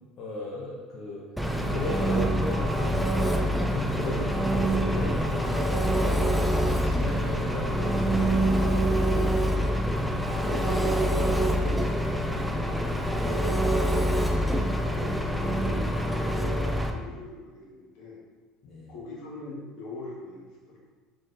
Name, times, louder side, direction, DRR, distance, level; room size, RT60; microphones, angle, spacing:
voice 1, 0.2-1.2 1.6-3.0 3.4-9.1 18.6-18.9, left 2 dB, 45° left, -5 dB, 0.7 m, -36 dB
Engine, 1.4-16.9, equal, ahead, 0.3 m, -25 dB
voice 2, 8.9-10.0 10.5-12.0 12.3-14.2 14.8-16.5 16.8-18.2 18.9-20.8, left 2 dB, 70° left, -4 dB, 1.3 m, -41 dB
3.8 x 3.5 x 2.6 m, 1.4 s
supercardioid pair, 115°, 0 cm